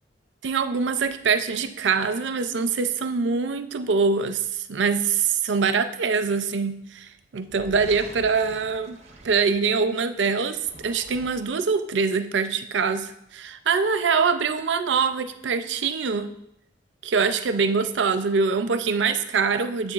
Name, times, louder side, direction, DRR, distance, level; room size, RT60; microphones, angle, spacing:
voice 1, 0.4-9.0 9.2-16.3 17.0-19.9, right 5 dB, 80° right, 10 dB, 0.5 m, -24 dB
sound 1, 7.5-10.0 10.5-11.7, right 2 dB, 35° right, 0.8 m, -46 dB
9.8 x 7.4 x 2.4 m, 0.77 s
head